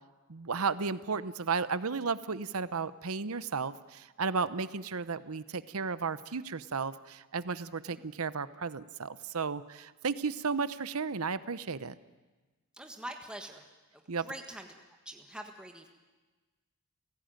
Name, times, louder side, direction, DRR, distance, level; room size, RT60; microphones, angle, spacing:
voice 1, 0.3-11.9 14.1-14.3, right 5 dB, 70° right, 14 dB, 0.9 m, -34 dB
voice 2, 12.8-13.6 14.2-14.7 15.0-15.9, right 1 dB, 5° right, 3 dB, 1.5 m, -44 dB
30.0 x 17.0 x 9.1 m, 1.3 s
head